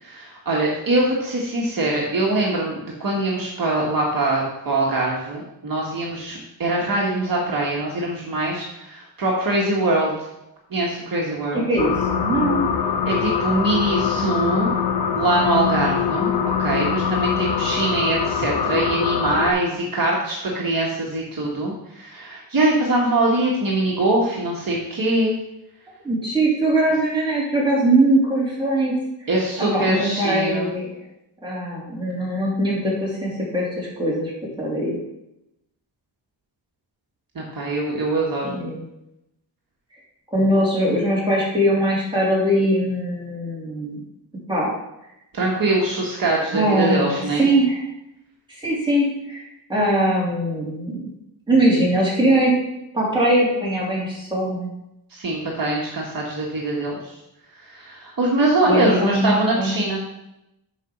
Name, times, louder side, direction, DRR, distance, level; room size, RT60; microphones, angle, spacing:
voice 1, 0.0-10.1 10.7-11.7 13.1-14.7 15.1-16.3 16.6-25.4 29.3-30.7 37.4-38.5 45.3-47.5 55.1-57.1 57.5-60.0, right 2 dB, 50° right, -4 dB, 1.6 m, -23 dB
voice 2, 11.5-12.7 26.0-29.0 29.6-30.9 31.4-34.3 34.6-35.0 38.4-38.8 40.3-44.0 44.5-44.7 46.5-47.8 48.5-49.4 49.7-51.0 51.5-52.5 52.9-54.7 58.7-59.7, right 1 dB, 10° right, -6 dB, 2.9 m, -21 dB
sound 1, 11.8-19.5, left 7 dB, 60° left, 0.8 m, -23 dB
7.1 x 5.3 x 5.9 m, 0.86 s
wide cardioid pair, 165°, 43 cm